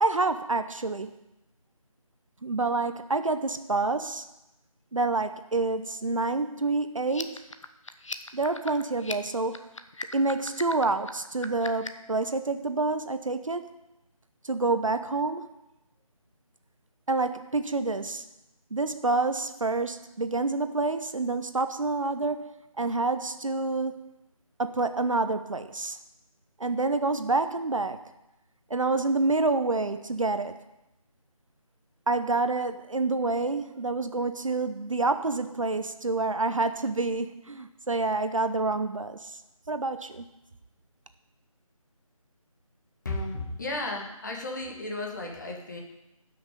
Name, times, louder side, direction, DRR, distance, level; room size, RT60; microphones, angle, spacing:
voice 1, 0.0-1.1 2.4-4.2 4.9-7.4 8.3-9.7 10.1-13.7 14.4-15.5 17.1-18.2 18.7-24.1 24.6-26.0 26.6-28.0 28.7-30.6 32.1-39.4 39.7-40.3, right 3 dB, 65° right, 10 dB, 0.8 m, -28 dB
sound 1, 7.0-12.1, left 3 dB, 60° left, 0.8 m, -39 dB
voice 2, 43.0-45.8, left 2 dB, 30° left, 0 dB, 1.6 m, -34 dB
14.5 x 6.1 x 5.2 m, 0.92 s
figure-of-eight pair, 160°, 18 cm